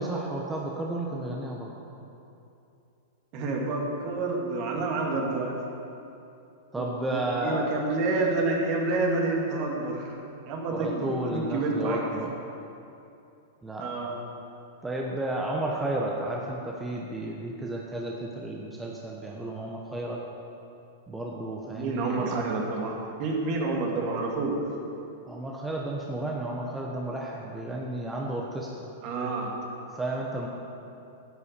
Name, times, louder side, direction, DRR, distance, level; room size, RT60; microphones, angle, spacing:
voice 1, 0.0-1.7 6.7-7.6 10.7-12.3 13.6-13.9 14.8-20.2 21.1-22.5 25.2-28.9 29.9-30.5, right 1 dB, 10° right, -2 dB, 1.2 m, -32 dB
voice 2, 3.3-5.5 6.8-10.1 10.5-12.0 13.8-14.2 21.7-24.6 29.0-29.6, right 3 dB, 45° right, -1 dB, 2.5 m, -28 dB
11.0 x 8.2 x 6.8 m, 2.7 s
hypercardioid pair, 120°, 0 cm